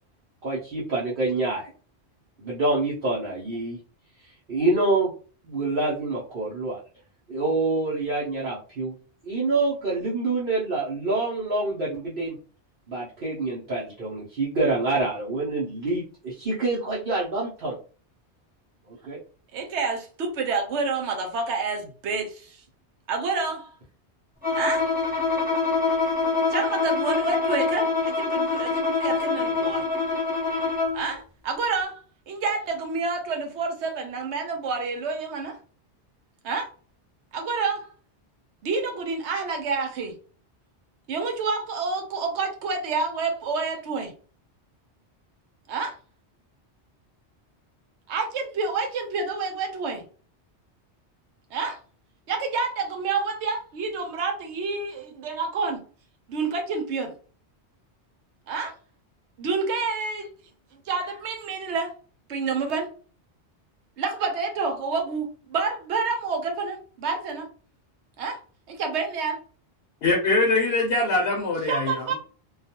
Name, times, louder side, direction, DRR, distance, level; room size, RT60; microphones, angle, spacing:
voice 1, 0.4-1.7 2.4-3.8 4.2-5.1 5.4-6.8 7.3-8.9 9.2-12.4 12.9-17.8 18.9-19.2, right 2 dB, 55° right, -7 dB, 0.9 m, -26 dB
voice 2, 19.5-22.6 23.1-23.7 24.5-24.8 26.5-29.8 30.9-35.6 36.4-36.7 37.3-37.9 38.6-40.1 41.1-44.1 45.7-46.0 48.1-50.0 51.5-51.8 52.3-55.8 56.3-57.1 58.5-58.7 59.4-60.3 60.9-61.9 62.3-62.9 64.0-67.5 68.2-68.4 68.7-69.4 71.7-72.1, right 4 dB, 85° right, 4 dB, 1.0 m, -28 dB
Bowed string instrument, 24.4-31.1, left 4 dB, 10° right, 1.0 m, -25 dB
voice 3, 70.0-71.9, left 2 dB, 65° left, 0 dB, 0.8 m, -22 dB
2.3 x 2.3 x 2.7 m, 0.39 s
omnidirectional pair, 1.2 m